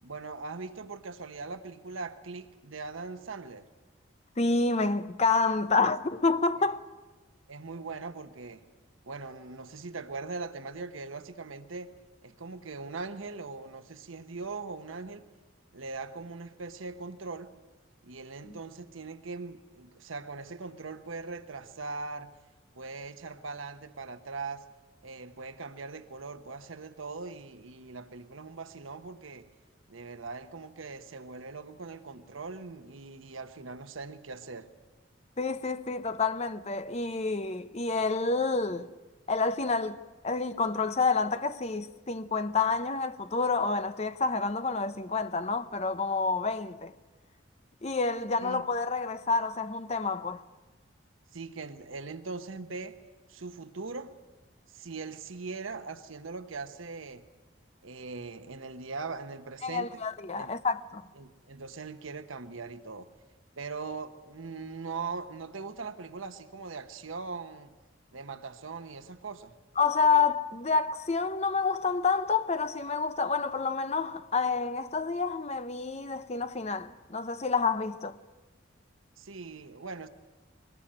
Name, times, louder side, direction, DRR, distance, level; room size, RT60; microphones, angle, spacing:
voice 1, 0.0-3.7 7.5-8.6 9.0-11.9 12.2-15.2 15.7-17.5 18.0-22.3 22.7-24.6 25.0-29.5 29.9-34.7 48.4-48.6 51.3-52.9 53.3-54.1 54.7-57.2 57.8-60.0 60.3-60.5 61.2-63.1 63.6-67.7 68.1-69.5 79.2-80.1, right 4 dB, 90° right, 1.1 m, -40 dB
voice 2, 4.4-6.8 18.5-18.6 35.4-38.9 39.3-40.0 40.2-46.9 47.8-50.4 59.6-61.0 69.8-78.2, left 4 dB, 35° left, 0.7 m, -28 dB
22.5 x 20.0 x 8.8 m
head